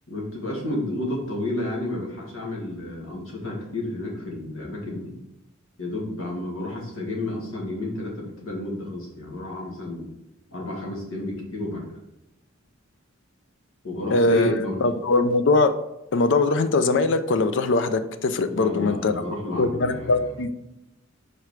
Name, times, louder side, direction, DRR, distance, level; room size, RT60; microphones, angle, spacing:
voice 1, 0.1-5.1 5.8-10.1 10.5-12.0 13.8-14.9 18.5-20.4, left 2 dB, 75° left, -2 dB, 1.7 m, -31 dB
voice 2, 14.1-15.7 16.1-19.1 19.6-20.5, left 3 dB, 60° left, 10 dB, 0.5 m, -21 dB
4.9 x 4.4 x 4.7 m, 0.89 s
head